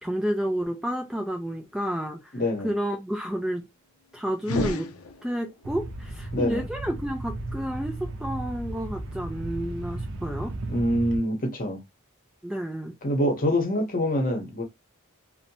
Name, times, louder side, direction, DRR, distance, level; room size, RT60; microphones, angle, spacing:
voice 1, 0.0-2.3 2.6-3.7 4.1-4.9 5.2-10.5 12.4-13.0, equal, 5° right, 0.3 m, -30 dB
voice 2, 2.3-2.7 6.3-6.6 10.7-11.8 13.0-14.6, equal, 40° left, 0.8 m, -25 dB
sound 1, 4.4-5.7, left 2 dB, 70° left, 0.5 m, -31 dB
sound 2, 5.6-11.2, right 2 dB, 60° right, 0.5 m, -35 dB
2.7 x 2.1 x 2.7 m
head